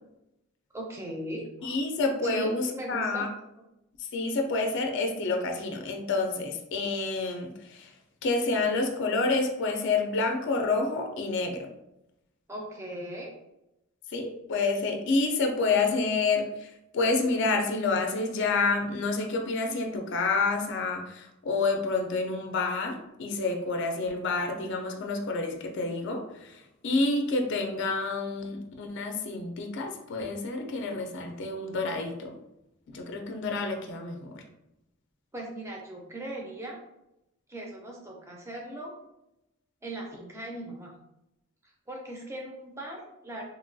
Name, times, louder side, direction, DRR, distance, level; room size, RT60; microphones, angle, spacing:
voice 1, 0.7-1.7 2.2-3.3 12.5-13.3 35.3-36.8 37.5-39.0 39.8-40.9 41.9-43.5, right 1 dB, 10° right, -1 dB, 0.4 m, -38 dB
voice 2, 1.6-3.3 4.0-7.9 8.2-11.7 14.1-32.4 32.9-34.4, left 3 dB, 55° left, 4 dB, 0.4 m, -29 dB
2.9 x 2.2 x 2.6 m, 0.87 s
head